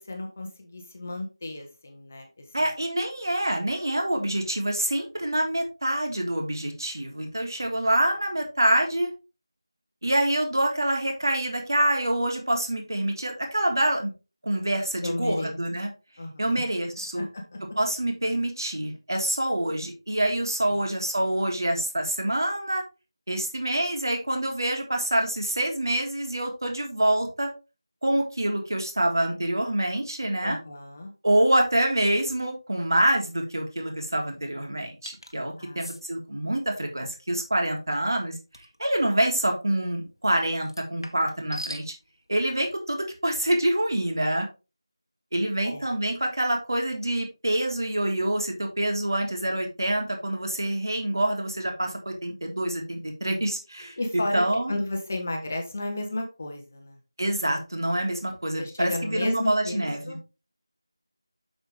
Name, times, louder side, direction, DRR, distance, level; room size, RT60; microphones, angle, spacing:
voice 1, 0.0-2.4 15.0-15.6 16.2-16.4 17.1-17.6 20.7-20.9 30.4-31.1 35.6-35.9 45.6-45.9 54.0-54.4 54.7-57.0 58.6-60.2, left 1 dB, 25° left, 3 dB, 1.4 m, -33 dB
voice 2, 2.5-9.1 10.0-14.1 14.4-15.9 16.4-17.3 17.8-22.8 23.3-27.5 28.0-30.6 31.2-38.4 38.8-41.9 42.3-44.5 45.3-54.0 54.3-54.8 57.2-60.2, right 1 dB, 50° right, 2 dB, 3.2 m, -26 dB
sound 1, 35.1-35.3 35.8-36.0 38.5-38.8 40.6-41.9, equal, 65° left, 1.6 m, -40 dB
7.8 x 7.0 x 3.5 m, 0.29 s
figure-of-eight pair, 170°, 3 cm